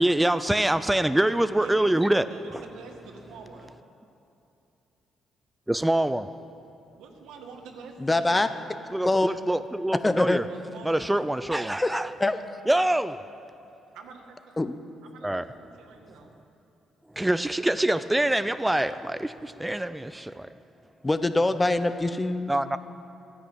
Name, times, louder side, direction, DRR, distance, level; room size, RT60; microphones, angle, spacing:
voice 1, 0.0-2.3 5.7-6.3 8.9-10.5 10.8-12.1 12.7-13.2 15.2-15.5 17.1-20.5 22.5-22.8, right 1 dB, 10° right, 12 dB, 0.4 m, -25 dB
voice 2, 1.6-2.0 2.3-3.8 7.0-8.6 10.5-11.1 13.9-14.6 15.0-16.4 18.6-19.0, right 5 dB, 90° right, 3 dB, 1.7 m, -46 dB
voice 3, 8.0-8.5 9.0-9.3 10.0-10.4 11.9-12.4 14.6-14.7 21.0-22.5, left 2 dB, 15° left, 11 dB, 0.7 m, -24 dB
14.0 x 10.0 x 8.6 m, 2.8 s
cardioid pair, 90°, 0 cm